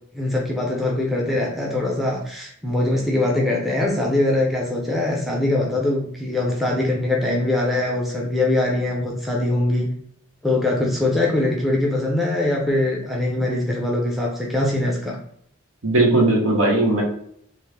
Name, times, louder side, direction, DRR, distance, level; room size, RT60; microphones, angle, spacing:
voice 1, 0.1-9.9 10.4-15.2, left 2 dB, ahead, -2 dB, 0.5 m, -22 dB
voice 2, 15.8-17.0, right 2 dB, 70° right, 0 dB, 1.1 m, -18 dB
3.6 x 2.5 x 3.2 m, 0.68 s
head